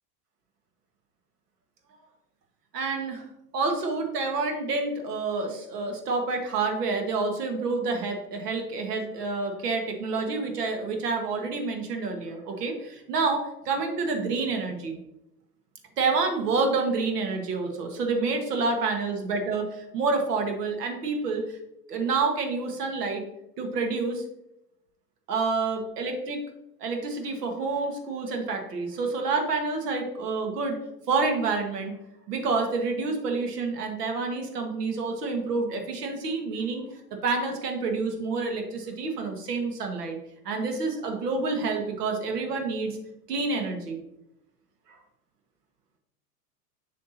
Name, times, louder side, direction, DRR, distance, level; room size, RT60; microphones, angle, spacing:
voice 1, 2.7-3.2 3.5-15.0 16.0-21.6 21.9-23.2 23.6-24.2 25.3-26.4 26.8-30.8 31.1-31.9 32.3-36.8 37.2-40.2 40.4-43.0 43.3-44.0, right 4 dB, 80° right, 3 dB, 1.7 m, -28 dB
6.8 x 6.3 x 2.8 m, 0.86 s
hypercardioid pair, 100°, 47 cm